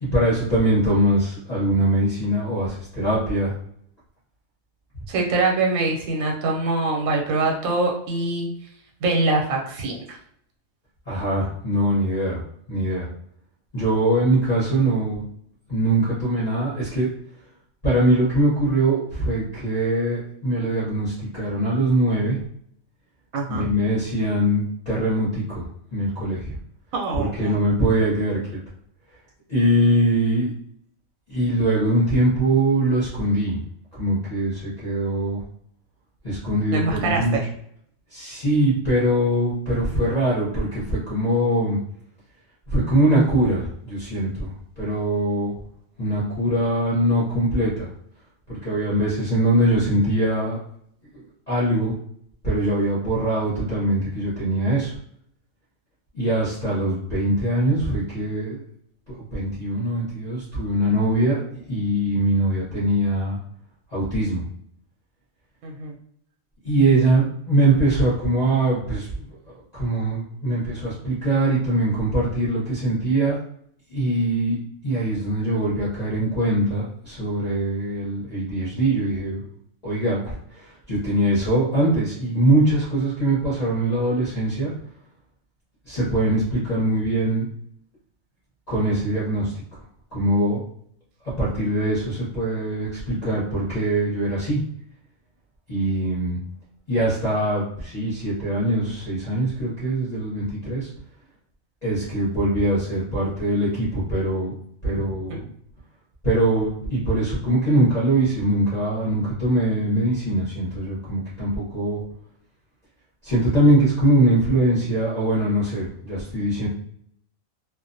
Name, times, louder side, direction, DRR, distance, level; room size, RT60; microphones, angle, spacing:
voice 1, 0.0-3.5 11.1-12.4 12.7-13.1 13.7-15.2 15.7-17.1 17.8-22.4 23.5-25.6 25.9-26.5 27.1-28.4 29.5-30.5 31.3-33.6 33.9-35.4 36.2-37.4 38.1-41.8 42.7-44.5 44.8-45.5 46.0-47.9 48.5-50.6 51.1-51.9 52.4-54.9 56.1-58.6 59.3-63.4 63.9-64.4 66.6-69.1 69.7-73.4 73.9-74.6 74.8-79.4 79.8-84.7 85.9-87.4 88.7-89.5 90.1-90.6 91.4-94.6 95.7-96.4 96.9-100.9 101.8-104.5 104.8-105.5 106.2-112.0 113.2-116.7, right 1 dB, 35° left, -10 dB, 0.8 m, -22 dB
voice 2, 5.1-8.5 9.0-10.2 23.3-23.7 26.9-27.6 36.7-37.4 65.6-65.9 105.3-105.4, right 3 dB, 85° right, 0 dB, 1.0 m, -24 dB
2.4 x 2.1 x 2.5 m, 0.68 s
omnidirectional pair, 1.4 m